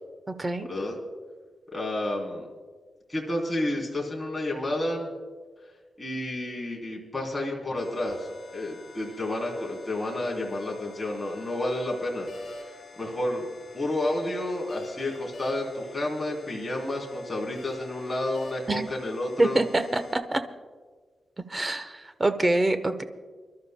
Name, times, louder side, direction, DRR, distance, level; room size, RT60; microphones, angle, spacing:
voice 1, 0.3-0.7 18.7-18.9 19.4-20.4 21.5-23.0, right 2 dB, 25° right, 9 dB, 0.9 m, -25 dB
voice 2, 1.7-2.5 3.1-5.1 6.0-8.3 8.5-12.3 13.0-13.5 13.7-19.6, left 1 dB, 15° left, -3 dB, 3.2 m, -30 dB
sound 1, 7.8-20.2, left 3 dB, 50° left, 4.3 m, -48 dB
29.5 x 12.5 x 2.2 m, 1.5 s
wide cardioid pair, 135°, 0 cm